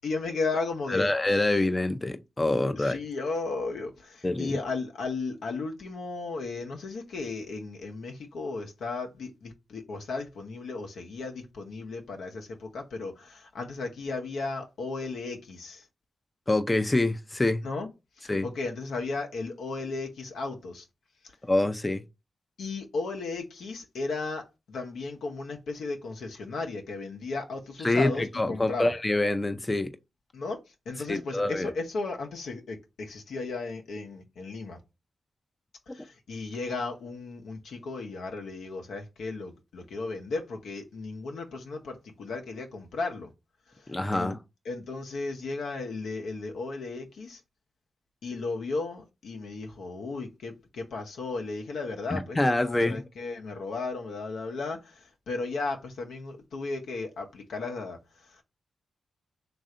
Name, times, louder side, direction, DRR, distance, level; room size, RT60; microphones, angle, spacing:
voice 1, 0.0-1.1 2.7-15.8 17.6-17.9 18.2-20.9 22.6-28.9 30.3-30.6 30.9-34.8 35.9-43.3 43.7-44.4 44.7-47.4 48.2-58.4, left 3 dB, 80° left, 0.7 m, -35 dB
voice 2, 0.9-3.0 4.2-4.6 16.5-17.6 18.3-18.5 21.4-22.0 27.8-29.9 31.1-31.7 43.9-44.4 52.1-52.9, left 2 dB, 25° left, 0.5 m, -26 dB
3.3 x 2.5 x 3.7 m
supercardioid pair, 40°, 0 cm